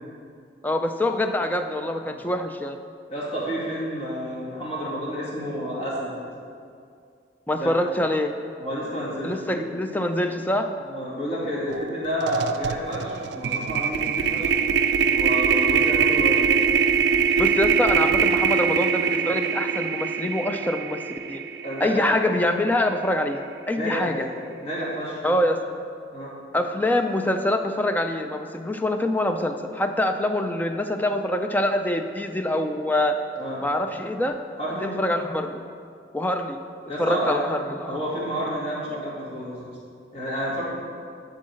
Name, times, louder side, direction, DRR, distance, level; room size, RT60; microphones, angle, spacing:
voice 1, 0.6-2.8 7.5-8.3 9.2-10.7 17.4-21.4 21.8-24.3 25.2-25.6 26.5-33.2 33.6-34.4 34.8-35.6 36.1-36.6 37.0-38.0, left 1 dB, 10° left, 6 dB, 0.4 m, -25 dB
voice 2, 3.1-6.2 7.5-7.7 8.6-9.7 10.8-14.5 15.1-16.6 21.6-22.2 23.7-24.2 24.6-25.4 26.1-26.4 33.4-33.6 34.6-35.0 36.9-37.4 37.9-39.8 40.1-40.6, equal, 35° left, -7 dB, 2.2 m, -30 dB
sound 1, 11.7-11.9 12.2-22.4, right 6 dB, 65° right, 0.4 m, -23 dB
11.5 x 3.9 x 6.4 m, 2.3 s
head